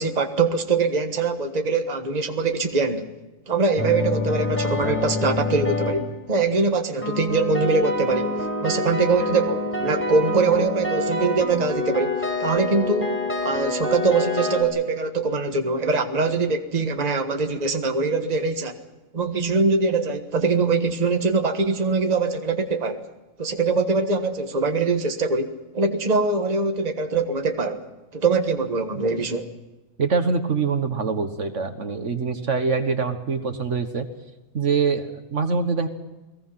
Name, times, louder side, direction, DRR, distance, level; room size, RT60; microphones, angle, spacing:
voice 1, 0.0-3.0 3.5-13.2 13.4-18.8 19.1-23.0 23.4-27.8 28.1-29.5, right 4 dB, 30° right, 6 dB, 1.5 m, -23 dB
sound 1, 3.8-6.1 7.0-14.6, left 2 dB, 10° left, 5.3 m, -26 dB
voice 2, 30.0-34.1 34.5-35.9, right 5 dB, 60° right, 8 dB, 1.7 m, -24 dB
29.5 x 19.5 x 5.8 m, 1.1 s
omnidirectional pair, 1.4 m